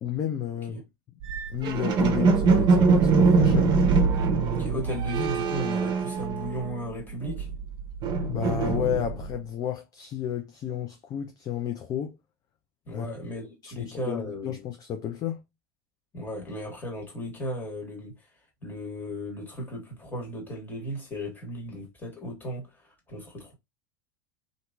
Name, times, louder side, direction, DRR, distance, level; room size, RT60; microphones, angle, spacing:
voice 1, 0.0-0.8 1.5-3.7 8.3-12.2 12.9-13.1 13.6-15.4, left 10 dB, 30° left, 0.4 m, -32 dB
sound 1, 1.2-6.8 7.1-9.4, right 4 dB, 35° right, 0.7 m, -23 dB
voice 2, 4.5-7.5 12.8-14.6 16.1-18.3 18.6-23.5, equal, 15° left, 1.4 m, -36 dB
2.8 x 2.6 x 2.3 m
figure-of-eight pair, 85°, 12 cm